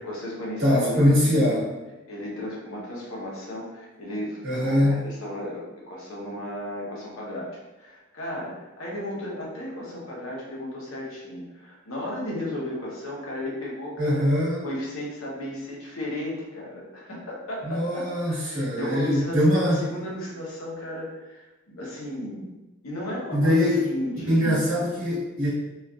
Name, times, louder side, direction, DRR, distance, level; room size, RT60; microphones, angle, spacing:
voice 1, 0.0-1.5 2.1-7.5 7.8-14.2 14.6-22.5 22.8-24.8, left 1 dB, 90° left, -4 dB, 0.8 m, -34 dB
voice 2, 0.6-1.6 4.4-5.0 14.0-14.6 17.6-19.8 23.3-23.8 24.2-25.5, equal, 80° right, -9 dB, 1.2 m, -22 dB
3.1 x 2.4 x 2.3 m, 1.1 s
head